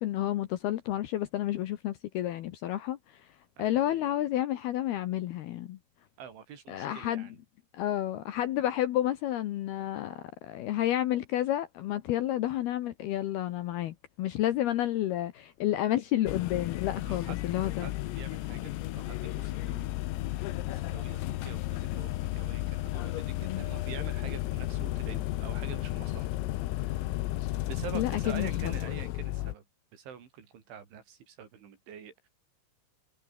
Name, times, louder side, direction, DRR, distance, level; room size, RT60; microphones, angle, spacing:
voice 1, 0.0-3.3 3.6-5.8 6.7-7.3 7.7-17.9 23.4-23.6 27.9-28.7, left 13 dB, 75° left, 2.4 m, -30 dB
voice 2, 3.6-4.1 6.2-7.4 17.0-19.9 20.2-20.4 20.7-26.3 26.7-27.1 27.6-29.6 29.9-32.3, right 8 dB, 70° right, 6.0 m, -46 dB
sound 1, 16.3-29.5, left 16 dB, 90° left, 4.0 m, -33 dB
omnidirectional pair, 5.8 m